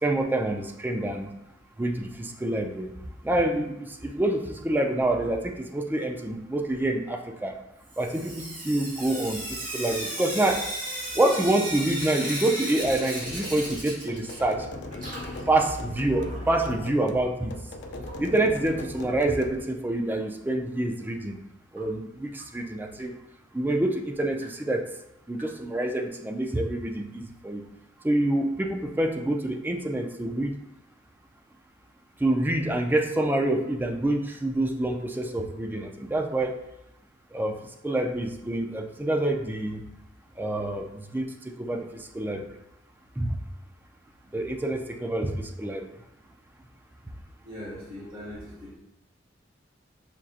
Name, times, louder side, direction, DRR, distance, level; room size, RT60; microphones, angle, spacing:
voice 1, 0.0-1.3 1.8-2.9 3.2-7.6 8.0-10.6 11.1-14.7 15.5-17.5 18.2-21.4 21.7-23.1 23.5-24.8 25.3-27.6 28.0-30.5 32.2-36.6 37.3-37.6 37.8-39.8 40.4-42.6 43.2-43.3 44.3-45.9, right 1 dB, 10° right, 3 dB, 0.3 m, -27 dB
Sink (filling or washing) / Drip, 7.9-14.6 14.9-16.8 18.0-18.1 18.4-18.5 18.8-18.9 21.8-21.9 22.4-22.5 23.0-23.1 23.7-23.8 24.4-24.5 25.4-25.5, right 1 dB, 45° right, 1.3 m, -36 dB
sound 1, 12.8-19.6, left 2 dB, 65° left, 0.4 m, -40 dB
voice 2, 47.4-48.8, equal, 25° right, -9 dB, 1.4 m, -40 dB
5.9 x 2.6 x 2.4 m, 0.85 s
head